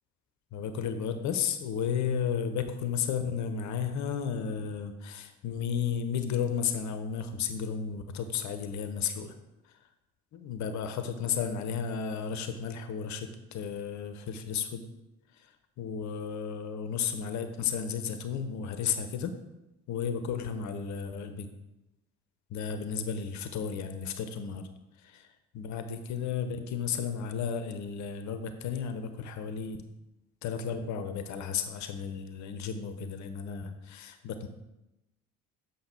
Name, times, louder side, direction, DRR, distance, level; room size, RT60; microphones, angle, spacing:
voice 1, 0.5-9.3 10.3-14.8 15.4-15.5 15.8-19.4 19.9-21.5 22.5-24.7 25.0-25.3 25.5-29.8 30.4-34.5, left 7 dB, 45° left, 8 dB, 0.8 m, -33 dB
7.7 x 5.4 x 4.3 m, 0.96 s
figure-of-eight pair, 55°, 38 cm